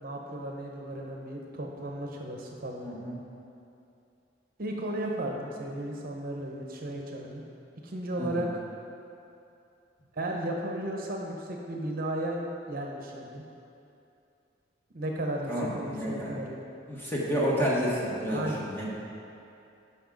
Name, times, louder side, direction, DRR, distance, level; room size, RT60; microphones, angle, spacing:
voice 1, 0.0-2.9 4.6-7.4 7.8-8.5 10.1-13.4 14.9-16.6 18.3-18.6, right 1 dB, 50° right, 0 dB, 0.9 m, -34 dB
voice 2, 2.8-3.1 8.2-8.4 15.5-16.3 16.9-18.9, equal, 10° left, -6 dB, 1.6 m, -30 dB
12.0 x 5.6 x 3.9 m, 2.7 s
head